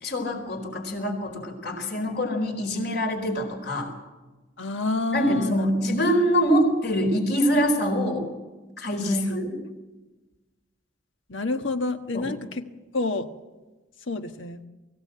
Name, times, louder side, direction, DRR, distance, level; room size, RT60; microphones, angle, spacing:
voice 1, 0.0-3.9 5.1-8.3 8.8-9.5 12.1-12.3, equal, 60° left, 4 dB, 4.3 m, -24 dB
voice 2, 4.6-5.7 9.1-9.4 11.3-12.6 12.9-13.3 14.1-14.6, left 3 dB, 80° left, 7 dB, 1.4 m, -28 dB
24.0 x 16.0 x 7.7 m, 1.2 s
head